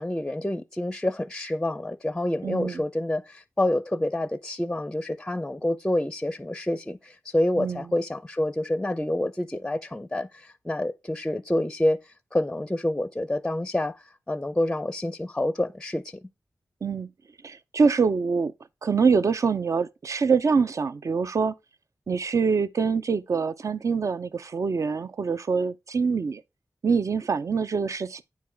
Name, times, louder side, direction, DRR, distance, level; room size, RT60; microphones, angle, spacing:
voice 1, 0.0-12.0 12.3-13.9 14.3-16.0, left 1 dB, 10° left, 0.5 m, -27 dB
voice 2, 2.4-2.8 7.6-7.9 16.8-17.1 17.4-18.5 18.8-21.5 22.1-26.4 26.8-28.2, right 5 dB, 55° right, 0.5 m, -25 dB
9.4 x 4.7 x 3.4 m
wide cardioid pair, 85°, 6 cm